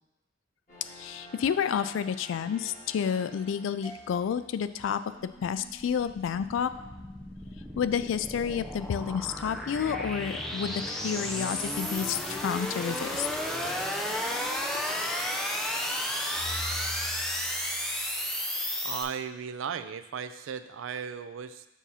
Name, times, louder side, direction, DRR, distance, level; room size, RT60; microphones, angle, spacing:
sound 1, 0.7-9.2, left 1 dB, 35° left, 2.0 m, -54 dB
voice 1, 1.0-5.0 5.4-6.7 7.8-13.3, left 7 dB, 80° left, 13 dB, 0.3 m, -30 dB
sound 2, 3.8-4.7 6.7-8.3 9.9-11.2 13.1-14.2 16.3-18.4, left 1 dB, 20° right, 1.1 m, -46 dB
sound 3, 5.2-19.0, left 1 dB, ahead, 0.4 m, -33 dB
voice 2, 18.8-21.7, right 7 dB, 90° right, 12 dB, 0.4 m, -36 dB
7.2 x 2.8 x 5.5 m, 0.97 s
head